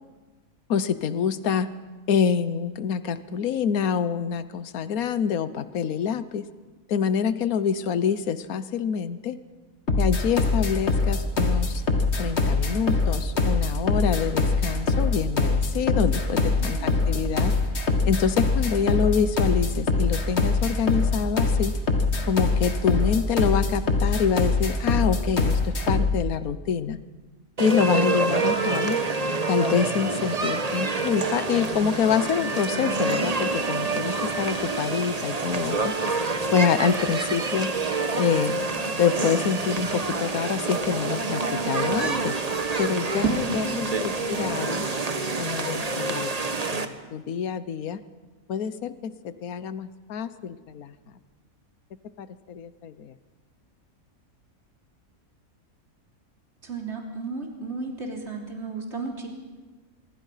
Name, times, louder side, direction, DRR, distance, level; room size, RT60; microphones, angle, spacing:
voice 1, 0.7-1.7 2.1-6.5 6.9-9.4 10.0-11.8 12.2-17.5 18.0-21.8 22.3-27.0 27.6-29.0 29.5-35.9 36.5-37.7 38.1-38.6 39.0-42.4 42.8-44.9 45.4-46.3 46.7-48.0 48.5-50.9 52.2-53.1, left 7 dB, 80° left, 13 dB, 1.4 m, -26 dB
sound 1, 9.9-26.2, left 3 dB, 50° left, 1.9 m, -23 dB
voice 2, 16.1-17.0 43.2-43.9 56.6-59.3, right 3 dB, 50° right, 1 dB, 3.7 m, -33 dB
sound 2, 27.6-46.9, right 3 dB, 30° right, 1.2 m, -27 dB
25.0 x 23.0 x 5.7 m, 1.3 s
omnidirectional pair, 1.5 m